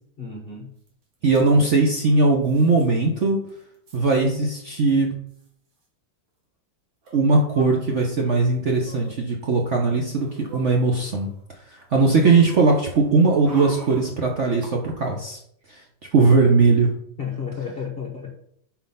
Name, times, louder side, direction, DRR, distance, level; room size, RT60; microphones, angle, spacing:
voice 1, 0.2-0.7 17.2-18.4, left 6 dB, 50° left, 0 dB, 0.7 m, -32 dB
sound 1, 0.9-1.0 1.1-1.5 2.4-2.9 3.2-3.3 3.5-4.1 4.9-5.0 5.3-5.5 7.0-8.2 8.8-9.1 9.8-11.4 11.8-14.7 15.0-15.1, right 1 dB, 85° right, 2.6 m, -43 dB
voice 2, 1.2-3.4 3.9-5.1 7.1-11.3 11.9-15.4 15.7-15.8 16.1-16.9, right 3 dB, 55° right, 1 dB, 0.8 m, -19 dB
5.8 x 4.4 x 5.5 m, 0.68 s
omnidirectional pair, 2.1 m